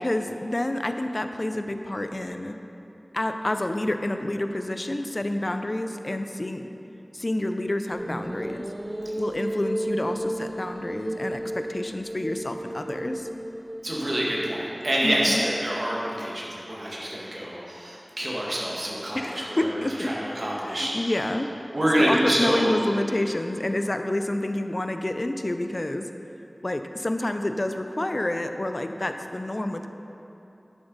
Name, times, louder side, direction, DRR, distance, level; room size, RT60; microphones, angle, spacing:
voice 1, 0.0-2.6 3.1-6.7 7.1-8.7 9.2-13.3 15.0-15.4 19.1-20.1 20.6-21.5 22.0-26.1 26.6-29.9, left 1 dB, 50° left, 7 dB, 0.5 m, -28 dB
sound 1, 7.9-15.3, right 1 dB, 30° right, 0.6 m, -34 dB
voice 2, 13.8-21.1 21.7-22.7, equal, 65° right, -5 dB, 1.8 m, -27 dB
11.0 x 6.9 x 4.0 m, 2.9 s
wide cardioid pair, 45°, 0 cm